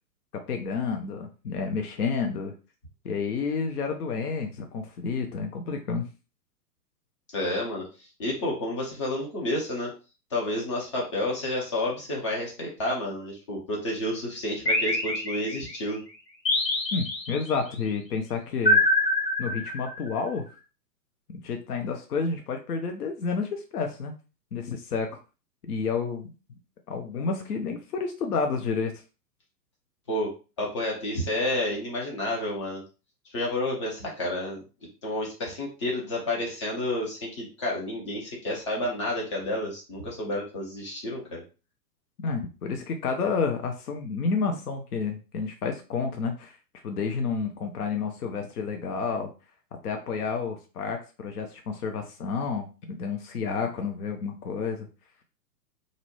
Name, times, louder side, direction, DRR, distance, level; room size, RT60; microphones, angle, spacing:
voice 1, 0.3-2.5 3.0-6.1 16.9-18.8 19.4-20.4 21.3-24.1 24.5-25.2 25.7-26.3 26.9-28.9 42.2-46.6 46.8-49.3 49.8-54.9, left 5 dB, 65° left, 4 dB, 0.6 m, -30 dB
voice 2, 7.3-7.9 8.2-9.9 10.3-16.0 30.1-30.3 30.6-32.8 33.3-34.6 35.0-41.4, left 1 dB, 20° left, -2 dB, 0.5 m, -30 dB
sound 1, 14.7-15.8 16.5-17.6 18.7-20.1, left 1 dB, 85° left, 1.0 m, -25 dB
2.5 x 2.0 x 2.9 m, 0.33 s
figure-of-eight pair, 115°, 50 cm